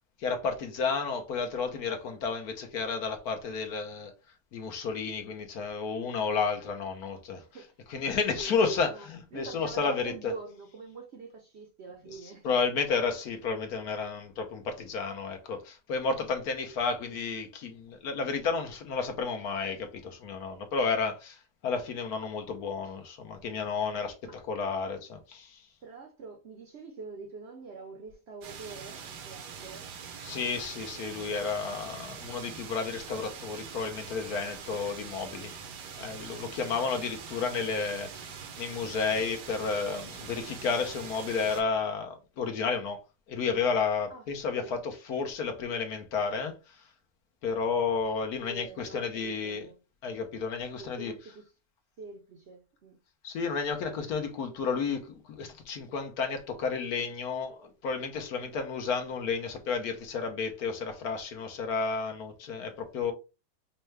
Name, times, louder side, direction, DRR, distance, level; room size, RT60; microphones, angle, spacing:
voice 1, 0.2-4.1 4.5-7.4 7.9-10.3 12.1-25.6 30.2-35.5 36.0-43.0 43.3-46.7 47.4-49.7 50.0-51.1 53.2-63.1, left 5 dB, 70° left, 1.3 m, -32 dB
voice 2, 7.4-7.8 8.1-12.6 24.2-24.4 25.8-29.9 44.1-44.3 44.6-44.8 48.5-49.8 50.8-51.5 52.0-53.0, right 4 dB, 55° right, 0.8 m, -45 dB
sound 1, 28.4-41.6, right 6 dB, 90° right, 1.5 m, -43 dB
5.3 x 2.3 x 3.2 m
omnidirectional pair, 1.7 m